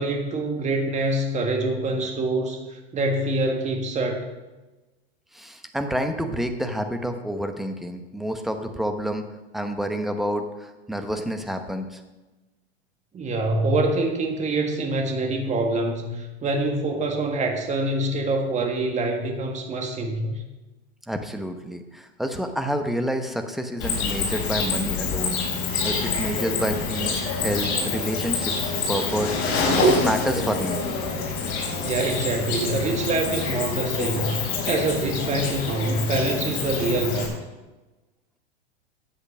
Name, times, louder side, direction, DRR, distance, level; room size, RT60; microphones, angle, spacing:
voice 1, 0.0-4.3 13.1-20.4 31.8-37.3, right 2 dB, 20° right, 2 dB, 1.8 m, -25 dB
voice 2, 5.3-9.2 9.5-12.0 21.1-25.4 25.8-30.8, equal, ahead, 6 dB, 0.9 m, -28 dB
Cricket, 23.8-37.3, left 3 dB, 45° left, 4.2 m, -26 dB
9.9 x 8.1 x 5.4 m, 1.1 s
hypercardioid pair, 115°, 33 cm